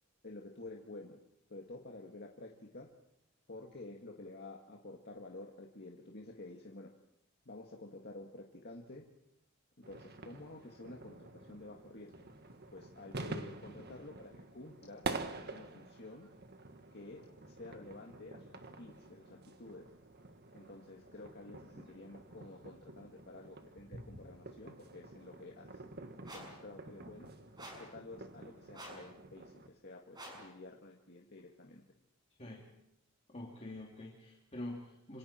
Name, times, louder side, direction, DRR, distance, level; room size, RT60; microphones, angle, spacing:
voice 1, 0.2-1.2 1.5-2.9 3.5-6.9 7.5-9.1 9.9-12.1 12.7-15.1 15.5-16.3 16.9-19.9 20.5-25.8 26.3-27.3 27.8-31.8, left 2 dB, 50° left, 0 dB, 2.1 m, -51 dB
sound 1, 9.8-29.7, right 3 dB, 50° right, 1.8 m, -48 dB
sound 2, 26.2-26.6 27.6-28.0 28.7-29.1 30.1-30.5, right 1 dB, 20° right, 6.4 m, -49 dB
voice 2, 33.3-35.2, left 1 dB, 30° left, -2 dB, 3.0 m, -45 dB
27.0 x 26.5 x 4.5 m, 0.85 s
head